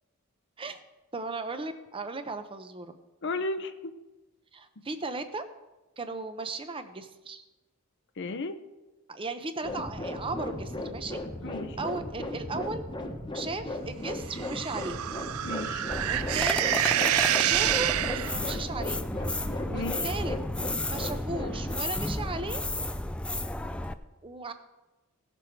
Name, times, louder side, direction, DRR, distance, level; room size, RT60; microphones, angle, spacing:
voice 1, 1.1-2.9 4.5-5.4 6.0-7.4 9.1-11.2 11.8-12.8 13.3-15.0 16.0-16.8 17.4-19.0 19.7-20.4 20.8-22.6 24.2-24.5, right 3 dB, 25° right, 9 dB, 0.7 m, -36 dB
voice 2, 3.2-3.9 8.2-8.6 11.4-11.8 15.4-15.8 19.7-20.0, left 2 dB, 55° left, 10 dB, 0.7 m, -34 dB
sound 1, 9.6-21.8, left 1 dB, 20° left, 1.1 m, -37 dB
sound 2, 14.3-18.6, right 12 dB, 75° right, 0.4 m, -27 dB
sound 3, 15.9-23.9, left 1 dB, 5° left, 0.3 m, -33 dB
17.0 x 6.9 x 4.6 m, 1.1 s
head